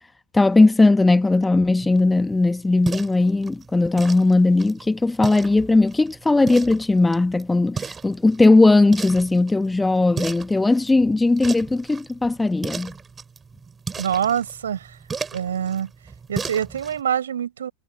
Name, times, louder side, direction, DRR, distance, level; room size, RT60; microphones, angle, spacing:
voice 1, 0.3-12.9, left 2 dB, 10° left, 1.6 m, -18 dB
sound 1, 1.8-17.0, right 5 dB, 15° right, 6.3 m, -36 dB
voice 2, 14.0-15.0 15.3-15.9 16.3-17.7, right 9 dB, 65° right, 5.9 m, -25 dB
figure-of-eight pair, 90°, 0 cm